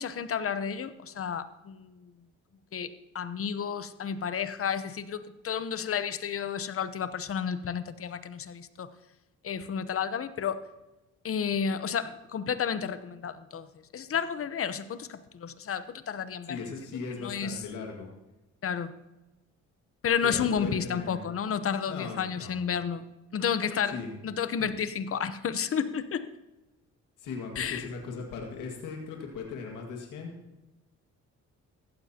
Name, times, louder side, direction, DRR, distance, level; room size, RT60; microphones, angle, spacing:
voice 1, 0.0-1.9 2.7-8.9 9.4-10.6 11.2-13.7 13.9-16.6 17.2-17.6 18.6-18.9 20.0-23.0 23.3-24.0 24.2-26.3 27.6-27.9, left 7 dB, 50° left, 12 dB, 0.9 m, -31 dB
voice 2, 16.5-18.1 20.2-21.2 21.9-22.6 23.9-24.2 27.2-30.3, left 5 dB, 90° left, 1 dB, 2.0 m, -38 dB
15.0 x 14.5 x 2.9 m, 1.0 s
cardioid pair, 90°, 30 cm